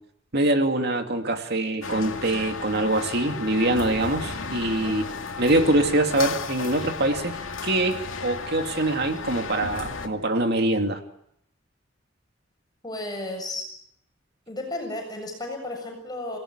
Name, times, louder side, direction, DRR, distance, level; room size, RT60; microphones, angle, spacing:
voice 1, 0.3-5.0 5.4-7.4 7.6-11.0, right 1 dB, 55° right, 5 dB, 2.6 m, -24 dB
sound 1, 1.8-10.1, left 4 dB, 75° left, 2.5 m, -34 dB
voice 2, 12.8-13.7 14.5-16.4, left 1 dB, 20° left, 2 dB, 7.1 m, -33 dB
28.0 x 18.0 x 8.8 m, 0.74 s
head